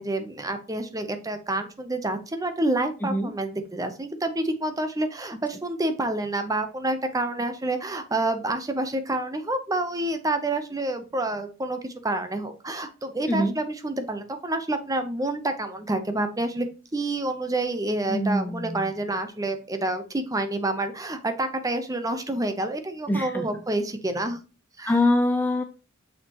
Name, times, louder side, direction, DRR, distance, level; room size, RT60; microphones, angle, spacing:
voice 1, 0.0-24.4 24.8-24.9, right 2 dB, 20° right, 8 dB, 0.8 m, -28 dB
voice 2, 3.0-3.3 13.3-13.5 18.1-18.8 23.1-23.5 24.8-25.6, left 1 dB, 10° left, 7 dB, 0.4 m, -24 dB
6.6 x 5.7 x 2.9 m, 0.33 s
head